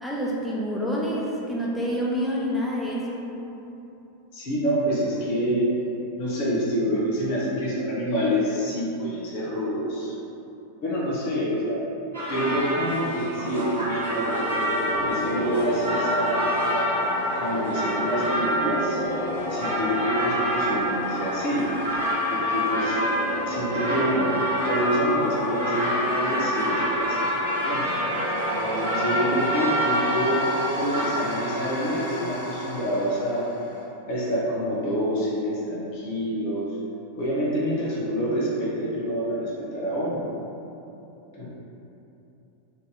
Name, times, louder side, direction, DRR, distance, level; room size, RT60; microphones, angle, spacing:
voice 1, 0.0-3.3, equal, ahead, -4 dB, 0.6 m, -27 dB
voice 2, 4.3-5.6 6.2-10.1 10.8-11.8 12.3-16.9 17.3-19.0 19.5-21.7 22.3-23.0 23.5-24.3 24.6-27.9 28.8-30.4 30.8-33.5 34.1-36.7 37.2-40.3 41.3-41.5, equal, 50° left, -6 dB, 0.9 m, -27 dB
sound 1, 12.1-31.0, equal, 80° right, 1.2 m, -28 dB
sound 2, 14.0-33.8, left 1 dB, 65° left, 1.3 m, -31 dB
4.0 x 2.8 x 3.7 m, 2.9 s
figure-of-eight pair, 90°, 0 cm